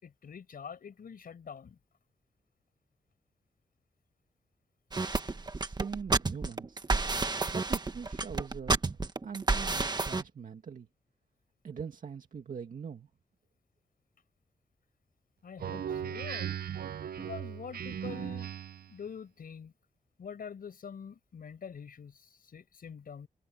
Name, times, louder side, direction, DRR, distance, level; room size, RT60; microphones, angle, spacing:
voice 1, 0.0-1.8 15.4-16.6 17.2-18.6 18.9-19.7 20.2-23.3, left 7 dB, 70° left, 5.5 m, -45 dB
sound 1, 4.9-10.2, right 3 dB, 25° right, 1.4 m, -30 dB
voice 2, 5.5-6.9 7.5-9.0 9.2-10.9 11.6-13.1, right 6 dB, 60° right, 2.1 m, -42 dB
Speech synthesizer, 15.6-18.9, right 9 dB, 85° right, 0.7 m, -37 dB
wide cardioid pair, 140°, 15 cm